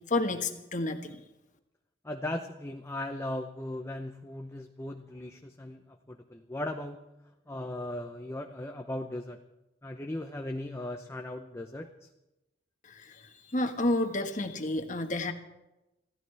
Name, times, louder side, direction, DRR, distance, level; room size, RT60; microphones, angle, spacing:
voice 1, 0.1-1.2 12.8-15.3, left 2 dB, 45° left, 6 dB, 1.5 m, -30 dB
voice 2, 2.0-7.1 7.5-9.4 9.8-12.1, left 1 dB, 15° left, 4 dB, 0.7 m, -38 dB
26.5 x 15.0 x 3.4 m, 0.95 s
head